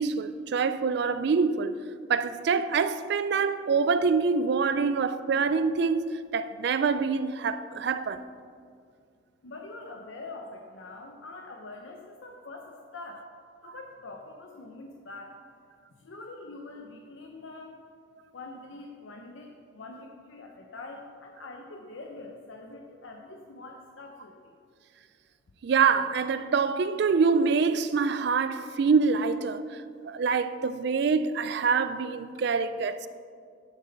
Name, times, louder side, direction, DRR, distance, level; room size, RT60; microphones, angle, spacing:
voice 1, 0.0-1.8 2.1-6.1 6.3-8.2 25.6-33.1, right 5 dB, 55° right, 0.3 m, -25 dB
voice 2, 9.4-13.2 13.6-15.4 16.0-17.9 18.3-24.6, left 2 dB, 75° left, 0.7 m, -44 dB
11.0 x 6.6 x 3.9 m
head